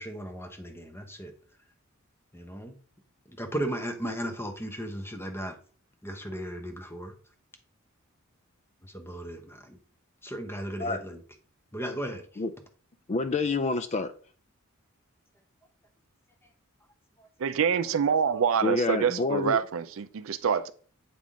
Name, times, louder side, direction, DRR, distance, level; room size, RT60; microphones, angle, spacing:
voice 1, 0.0-1.3 2.3-2.7 3.4-5.6 6.0-7.1 8.8-9.8 10.2-11.2 11.7-12.2, right 1 dB, 10° left, 0.9 m, -36 dB
voice 2, 13.1-14.1 18.6-19.6, left 3 dB, 30° left, 0.4 m, -28 dB
voice 3, 17.4-20.7, right 7 dB, 65° right, 0.4 m, -26 dB
8.4 x 3.6 x 3.7 m
head